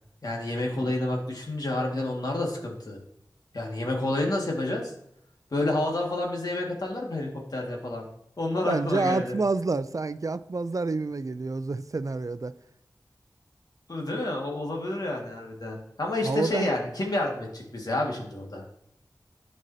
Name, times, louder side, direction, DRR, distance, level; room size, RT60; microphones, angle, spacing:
voice 1, 0.2-3.0 3.5-4.9 5.5-8.1 8.4-9.4 13.9-18.6, left 2 dB, 60° left, 1.8 m, -29 dB
voice 2, 8.6-12.5 16.2-16.7, right 3 dB, 50° right, 0.4 m, -28 dB
12.0 x 5.3 x 2.8 m
wide cardioid pair, 60°, 7 cm